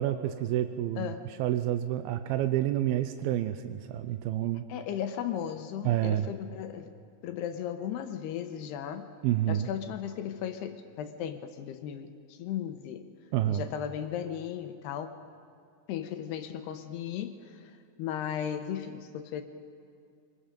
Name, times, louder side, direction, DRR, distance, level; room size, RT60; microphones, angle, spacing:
voice 1, 0.0-1.1 1.4-4.7 5.8-6.3 9.2-9.7 13.3-13.7, right 12 dB, 85° right, 9 dB, 2.2 m, -28 dB
voice 2, 1.0-1.3 4.7-7.0 7.2-9.1 9.5-13.1 13.5-15.2 15.9-19.4, left 9 dB, 80° left, 8 dB, 2.8 m, -36 dB
25.5 x 20.5 x 5.2 m, 2.4 s
omnidirectional pair, 4.9 m